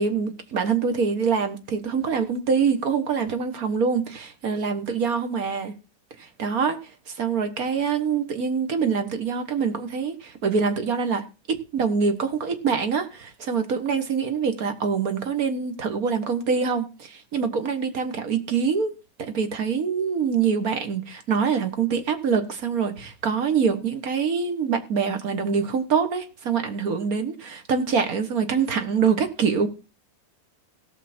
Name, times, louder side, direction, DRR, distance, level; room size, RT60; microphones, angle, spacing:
voice 1, 0.0-5.7 6.2-6.8 7.2-18.9 19.2-29.7, right 6 dB, 55° right, 1.8 m, -25 dB
17.0 x 6.6 x 4.3 m
omnidirectional pair, 1.9 m